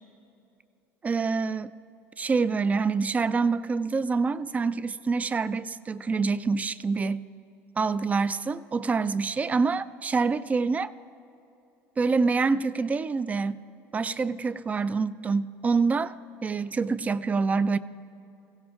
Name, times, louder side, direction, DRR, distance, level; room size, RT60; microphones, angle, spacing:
voice 1, 1.0-1.7 2.2-7.3 7.8-10.9 12.0-13.6 13.9-16.1 16.4-17.8, right 4 dB, 20° right, 0.3 m, -26 dB
21.5 x 16.0 x 2.4 m
supercardioid pair, 100°, 7 cm